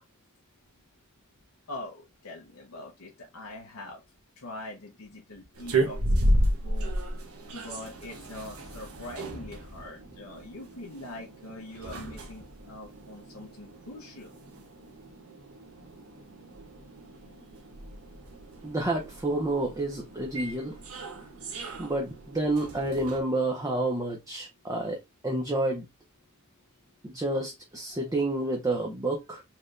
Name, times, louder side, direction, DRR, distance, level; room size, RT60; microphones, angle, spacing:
voice 1, 1.7-4.0 4.4-6.3 6.6-6.9 7.5-14.4, left 2 dB, 80° left, 0.9 m, -43 dB
sound 1, 5.5-23.2, right 1 dB, 75° right, 1.0 m, -34 dB
voice 2, 18.6-20.7 21.8-25.8 27.0-29.4, right 2 dB, 15° right, 0.6 m, -29 dB
4.3 x 3.2 x 2.5 m
head